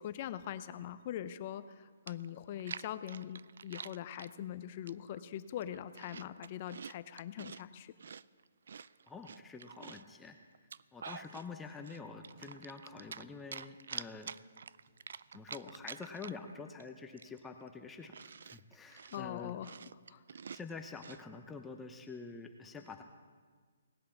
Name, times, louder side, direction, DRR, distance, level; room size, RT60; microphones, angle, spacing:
voice 1, 0.0-7.9 19.1-20.2, left 11 dB, 40° left, 13 dB, 0.6 m, -42 dB
Chewing mastication, 1.7-1.8 2.1-4.3 4.9-5.2 5.6-7.6 8.0-10.1 10.5-11.5 11.8-13.3 13.5-16.5 16.8-16.9 17.2-21.2, right 6 dB, 70° right, 0.3 m, -47 dB
voice 2, 9.1-10.4 10.9-14.3 15.3-18.1 18.4-19.6 20.5-23.0, left 4 dB, 10° left, 4 dB, 0.8 m, -47 dB
sound 1, 12.3-13.5 14.9-15.9, right 3 dB, 45° right, 3.6 m, -64 dB
18.5 x 8.5 x 7.2 m, 1.6 s
hypercardioid pair, 145°, 0 cm